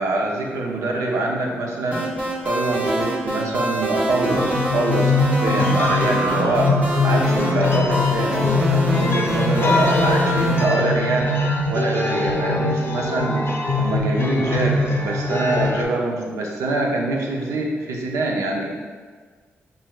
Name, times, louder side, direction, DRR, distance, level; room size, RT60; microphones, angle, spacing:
voice 1, 0.0-2.1 2.4-6.7 7.0-11.3 11.7-13.4 13.8-18.7, right 2 dB, 85° right, 0 dB, 0.5 m, -24 dB
sound 1, 1.9-10.6, right 1 dB, 30° right, 1.2 m, -25 dB
sound 2, 4.3-15.8, left 3 dB, 50° left, 0.5 m, -22 dB
5.6 x 2.6 x 2.3 m, 1.5 s
cardioid pair, 60°, 5 cm